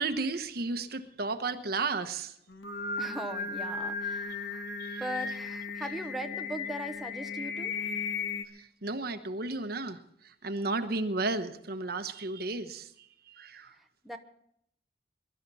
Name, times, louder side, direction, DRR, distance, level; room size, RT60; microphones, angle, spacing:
voice 1, 0.0-2.3 4.8-5.0 8.5-12.9 13.3-13.7, right 3 dB, 60° right, 9 dB, 1.1 m, -33 dB
Singing, 2.5-8.4, left 4 dB, 80° left, 1.6 m, -35 dB
voice 2, 3.0-4.7 5.0-7.9 13.6-14.2, right 1 dB, ahead, 4 dB, 1.0 m, -40 dB
22.5 x 12.0 x 4.2 m, 0.71 s
head